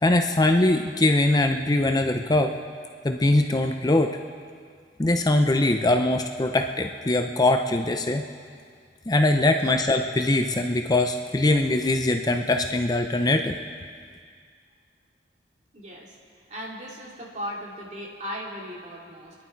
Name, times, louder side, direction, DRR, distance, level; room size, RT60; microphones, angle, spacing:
voice 1, 0.0-2.5 3.0-4.2 5.0-8.2 9.1-13.6, left 2 dB, 20° left, 5 dB, 0.5 m, -22 dB
voice 2, 15.7-16.2 16.5-19.3, equal, 40° right, -3 dB, 2.6 m, -37 dB
26.0 x 10.5 x 4.6 m, 2.1 s
head